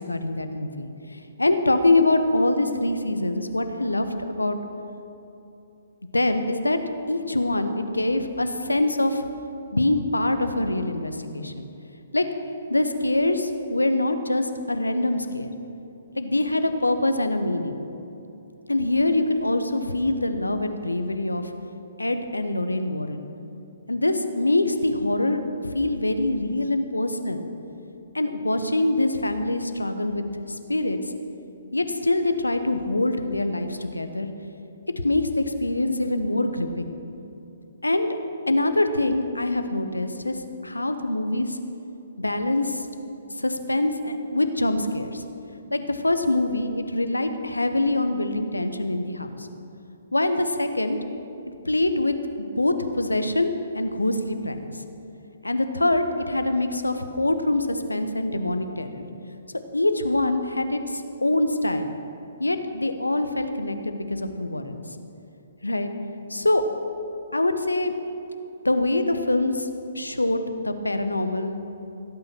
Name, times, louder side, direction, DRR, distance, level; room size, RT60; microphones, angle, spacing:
voice 1, 0.0-4.6 6.1-6.8 7.1-9.2 9.7-11.7 12.1-12.2 12.7-15.5 16.1-17.8 18.7-21.5 22.0-23.2 23.9-27.5 28.1-31.0 31.7-34.3 35.0-36.9 37.8-38.1 38.5-41.6 42.2-42.9 43.3-45.2 45.7-49.5 50.1-51.0 51.6-52.2 52.6-54.8 55.4-59.0 59.7-61.9 62.4-64.8 65.6-65.9 66.3-66.6 67.3-67.9 68.6-69.7 69.9-71.6, left 2 dB, 85° left, 8 dB, 1.1 m, -24 dB
16.5 x 8.8 x 6.2 m, 2.8 s
figure-of-eight pair, 130°, 0 cm